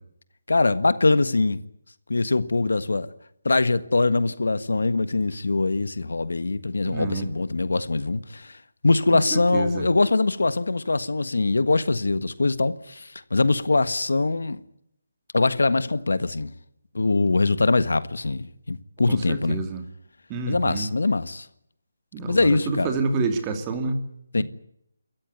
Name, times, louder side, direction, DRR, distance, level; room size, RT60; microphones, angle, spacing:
voice 1, 0.5-1.6 2.1-3.1 3.4-8.6 8.8-14.6 15.3-16.5 16.9-19.6 20.5-21.5 22.3-22.9 24.3-24.4, left 3 dB, 85° left, 1.5 m, -22 dB
voice 2, 6.8-7.3 9.3-9.9 19.1-19.9 20.3-20.9 22.1-24.0 24.4-24.5, right 4 dB, 20° right, 2.6 m, -28 dB
28.0 x 14.0 x 9.5 m
hypercardioid pair, 165°, 0 cm